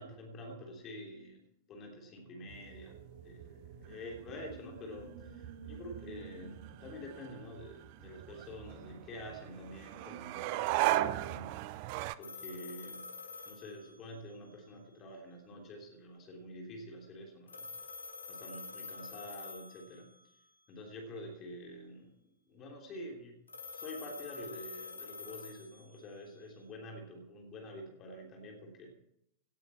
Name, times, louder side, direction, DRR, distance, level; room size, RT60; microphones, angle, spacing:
voice 1, 0.0-1.4 1.7-11.6 12.2-13.1 13.4-17.7 18.3-20.1 20.7-22.1 22.5-23.4 23.7-29.0, left 1 dB, 30° left, 2 dB, 3.2 m, -47 dB
sound 1, 2.0-8.2, right 5 dB, 70° right, 1.8 m, -54 dB
sound 2, 2.5-12.1, right 15 dB, 45° right, 0.5 m, -38 dB
sound 3, 12.2-14.5 17.5-20.3 23.5-26.4, left 4 dB, 75° left, 1.3 m, -47 dB
17.5 x 9.2 x 4.4 m, 0.77 s
figure-of-eight pair, 90°, 0 cm